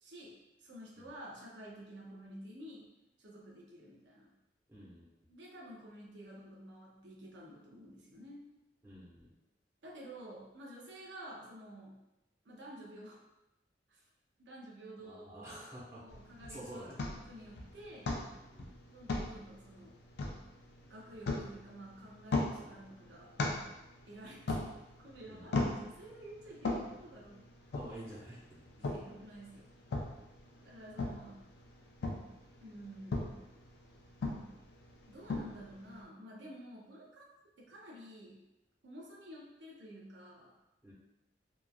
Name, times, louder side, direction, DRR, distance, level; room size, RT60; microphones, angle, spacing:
voice 1, 0.0-2.9 3.2-4.3 5.3-8.4 9.8-12.0 12.4-13.2 13.9-14.1 14.4-15.7 16.0-16.9 17.2-18.1 18.9-20.0 20.9-23.4 24.1-24.7 25.0-27.4 28.8-29.7 30.6-31.4 32.6-33.4 35.1-37.3 37.6-38.4 38.8-40.5, right 1 dB, 85° right, -3 dB, 0.7 m, -51 dB
voice 2, 4.7-5.0 8.8-9.3 15.0-16.0 16.5-17.0 18.5-18.7 25.3-25.5 27.7-28.9 40.8-40.9, right 1 dB, 15° right, -9 dB, 0.8 m, -49 dB
sound 1, 16.1-36.0, left 2 dB, 65° left, 0.4 m, -40 dB
3.0 x 2.3 x 2.3 m, 0.95 s
head